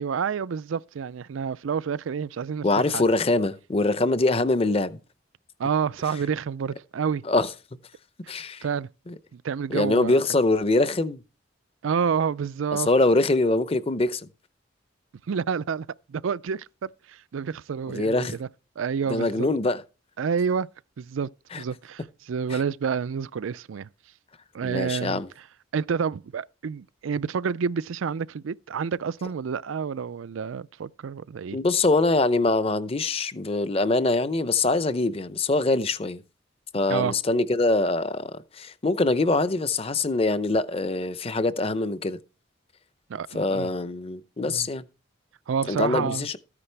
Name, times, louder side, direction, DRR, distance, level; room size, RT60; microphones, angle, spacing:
voice 1, 0.0-3.0 5.6-7.2 8.2-8.3 8.6-8.9 9.3-10.2 11.8-12.9 15.3-18.5 18.8-19.5 20.2-20.7 21.0-21.3 21.6-23.9 24.5-25.2 25.7-31.6 36.9-37.2 43.1-43.7 44.5-44.7 45.5-46.3, right 6 dB, 90° right, 0.4 m, -29 dB
voice 2, 2.6-5.0 7.3-7.5 8.3-8.6 9.1-9.2 9.7-11.2 12.7-14.2 17.9-18.3 19.1-19.8 21.5-21.6 22.5-22.6 24.6-25.3 31.5-36.2 36.7-42.2 43.3-44.8 45.7-46.4, left 2 dB, 30° left, 0.6 m, -23 dB
14.0 x 9.8 x 3.4 m
head